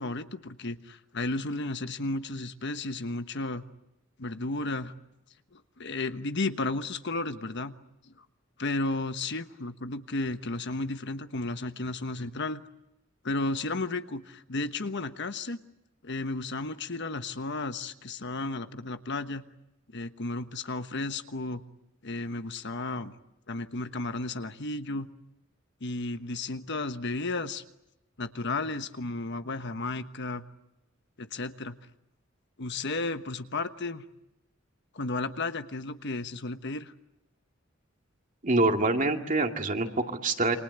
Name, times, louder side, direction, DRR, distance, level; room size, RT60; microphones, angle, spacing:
voice 1, 0.0-3.6 4.2-4.9 5.5-7.7 8.1-8.2 8.6-12.6 13.2-15.6 16.0-19.4 19.9-21.6 22.0-23.1 23.5-25.1 25.8-27.6 28.2-30.4 31.2-31.8 32.6-34.0 34.9-36.9, left 2 dB, 60° left, 9 dB, 1.2 m, -33 dB
voice 2, 38.4-40.6, right 2 dB, 40° right, 4 dB, 2.2 m, -25 dB
28.0 x 25.5 x 8.2 m, 0.90 s
head